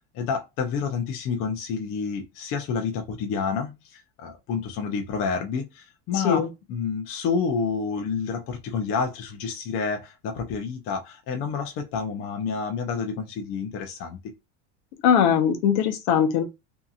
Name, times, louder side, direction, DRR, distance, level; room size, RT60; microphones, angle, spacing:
voice 1, 0.1-14.2, left 5 dB, 35° left, 0.5 m, -29 dB
voice 2, 15.0-16.4, left 8 dB, 65° left, 0.8 m, -20 dB
2.8 x 2.6 x 2.3 m
cardioid pair, 165°, 37 cm